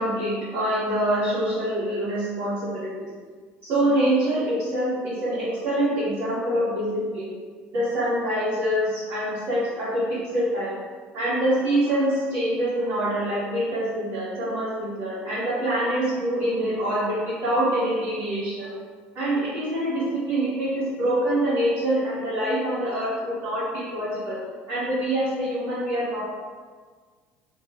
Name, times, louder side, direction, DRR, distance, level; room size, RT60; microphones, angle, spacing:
voice 1, 0.0-2.9 3.6-7.2 7.7-10.7 11.1-18.7 19.1-24.4 24.7-26.2, right 1 dB, 50° right, -15 dB, 1.4 m, -25 dB
2.9 x 2.2 x 3.0 m, 1.5 s
cardioid pair, 180°, 4 cm